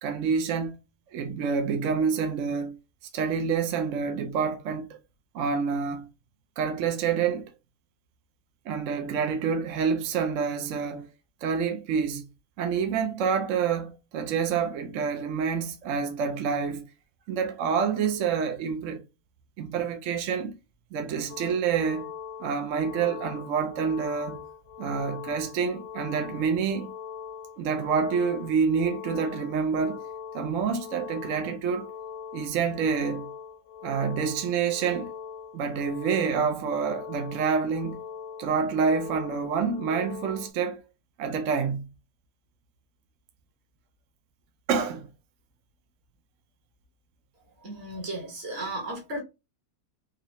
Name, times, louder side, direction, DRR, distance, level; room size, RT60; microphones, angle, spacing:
voice 1, 0.0-0.8 1.1-2.7 3.1-4.9 5.3-6.1 6.6-7.5 8.7-11.1 11.4-12.2 12.6-16.8 17.3-19.0 19.6-20.5 20.9-22.1 22.4-24.4 24.8-26.9 27.6-30.0 30.3-31.9 32.3-33.2 33.8-35.1 35.5-38.0 38.4-40.8 41.2-41.8 44.7-45.1, right 6 dB, 65° right, 0.9 m, -27 dB
sound 1, 21.3-40.5, left 7 dB, 75° left, 1.1 m, -42 dB
voice 2, 47.6-49.2, right 1 dB, 45° right, 1.6 m, -34 dB
4.0 x 2.7 x 3.0 m
omnidirectional pair, 1.6 m